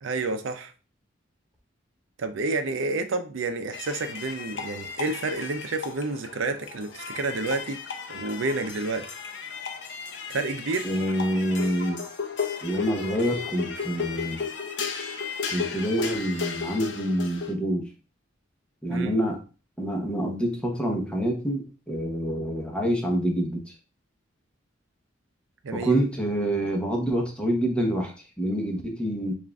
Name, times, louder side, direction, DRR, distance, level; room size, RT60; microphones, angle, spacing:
voice 1, 0.0-0.7 2.2-7.8 8.1-9.1 10.3-10.9 18.9-19.2 25.6-26.0, right 3 dB, 80° right, 0.5 m, -29 dB
sound 1, 3.7-17.5, left 6 dB, 65° left, 0.6 m, -34 dB
voice 2, 10.8-12.0 12.6-14.4 15.5-17.9 18.8-19.4 19.8-23.7 25.7-29.3, right 1 dB, 5° left, 0.8 m, -27 dB
7.1 x 2.5 x 2.3 m
head